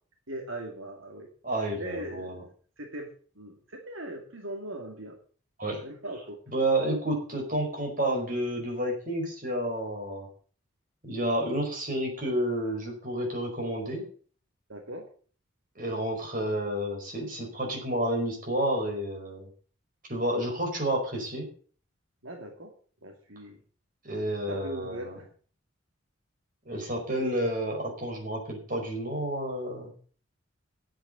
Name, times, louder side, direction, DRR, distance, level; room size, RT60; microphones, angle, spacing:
voice 1, 0.3-1.3 1.8-2.4 2.8-3.1 3.4-5.2 5.8-6.4 14.7-15.1 22.2-22.7 23.0-23.6 24.5-25.2, right 1 dB, 80° right, 1 dB, 2.2 m, -39 dB
voice 2, 1.4-2.4 5.6-5.8 6.5-10.3 11.0-14.0 15.7-19.5 20.1-21.5 24.0-25.2 26.6-29.9, right 1 dB, 40° right, 1 dB, 5.0 m, -30 dB
10.0 x 8.0 x 7.9 m, 0.43 s
head